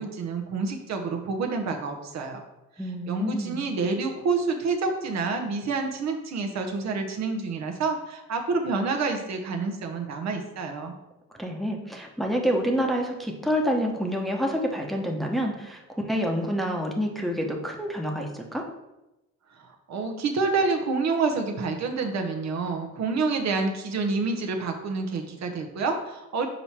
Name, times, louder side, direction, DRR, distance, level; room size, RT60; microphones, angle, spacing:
voice 1, 0.0-2.4 3.1-10.9 19.9-26.5, right 4 dB, 60° right, 4 dB, 0.9 m, -28 dB
voice 2, 2.8-3.7 11.4-15.8 16.1-18.7, equal, ahead, 1 dB, 0.9 m, -27 dB
5.4 x 4.5 x 4.3 m, 0.97 s
cardioid pair, 90°, 30 cm